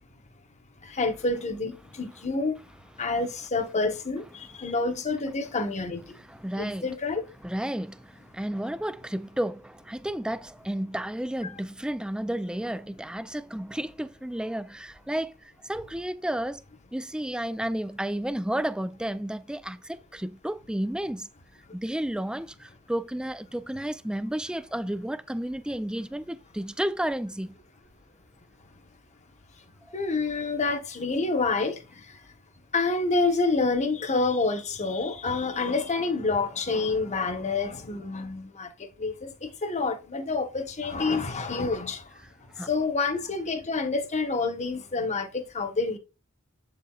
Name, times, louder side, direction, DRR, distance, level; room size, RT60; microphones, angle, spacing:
voice 1, 0.9-2.6 3.0-6.0 6.5-7.2 11.4-11.5 29.9-31.8 32.7-42.0 42.7-46.0, left 3 dB, 30° left, 1.2 m, -28 dB
voice 2, 6.3-6.9 7.4-16.6 16.9-21.3 21.7-27.5 29.9-30.0 42.6-42.7, right 1 dB, 5° right, 0.4 m, -32 dB
8.1 x 7.6 x 2.4 m
head